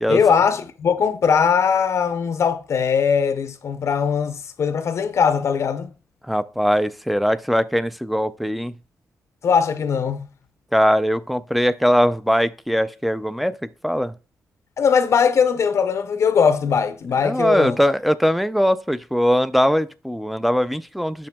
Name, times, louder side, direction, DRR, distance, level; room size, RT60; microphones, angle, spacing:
voice 1, 0.1-5.9 9.4-10.3 14.8-17.8, left 6 dB, 55° left, 0.5 m, -20 dB
voice 2, 6.2-8.7 10.7-13.5 13.8-14.1 17.2-21.3, equal, ahead, 0.3 m, -20 dB
8.5 x 6.1 x 2.2 m
wide cardioid pair, 155°, 6 cm